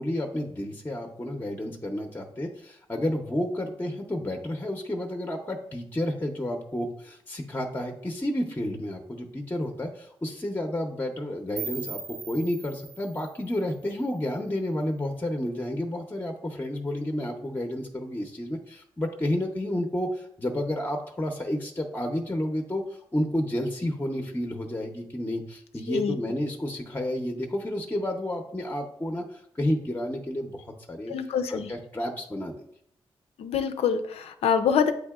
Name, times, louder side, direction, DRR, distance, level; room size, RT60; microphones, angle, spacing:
voice 1, 0.0-31.1 31.5-32.6, left 1 dB, 20° left, 3 dB, 0.7 m, -31 dB
sound 1, 11.6-14.5, right 5 dB, 30° right, 0.6 m, -40 dB
voice 2, 31.1-31.7 33.4-34.9, left 7 dB, 80° left, 9 dB, 0.5 m, -25 dB
8.0 x 2.7 x 2.3 m, 0.70 s
supercardioid pair, 50°, 10 cm